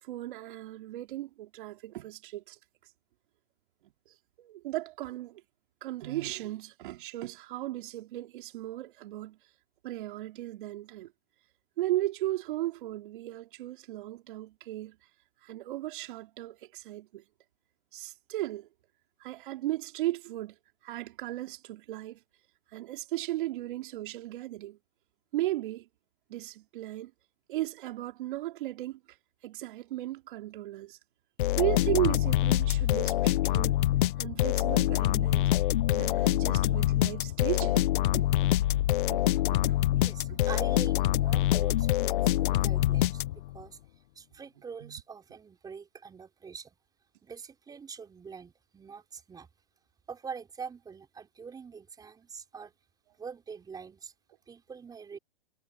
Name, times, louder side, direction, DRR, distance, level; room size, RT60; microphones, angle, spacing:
voice 1, 0.0-2.6 4.4-5.4 5.8-9.4 9.8-11.1 11.8-15.0 15.4-17.2 17.9-18.7 19.2-20.6 20.8-22.2 22.7-24.8 25.3-25.9 26.3-27.1 27.5-29.0 29.4-31.0 31.5-33.8 34.2-35.5 35.9-38.3 39.1-39.2 39.5-39.8 40.3-40.4 44.8-45.0, right 15 dB, 55° right, 2.7 m, -35 dB
sound 1, 31.4-43.6, left 14 dB, 55° left, 0.7 m, -25 dB
voice 2, 40.0-43.8 44.2-46.8 47.2-49.5 50.1-52.7 53.2-54.1 54.5-55.2, right 6 dB, 10° right, 5.5 m, -44 dB
hypercardioid pair, 140°, 32 cm